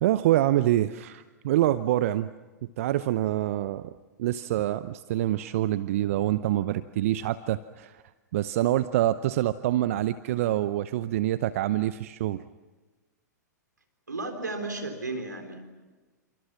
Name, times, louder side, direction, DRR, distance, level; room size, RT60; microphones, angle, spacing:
voice 1, 0.0-2.3 2.8-3.9 4.2-8.0 8.3-12.4, right 14 dB, 50° right, 15 dB, 0.8 m, -26 dB
voice 2, 14.1-15.6, right 2 dB, 80° right, 6 dB, 3.8 m, -34 dB
30.0 x 28.0 x 6.1 m, 1.3 s
figure-of-eight pair, 105°, 10 cm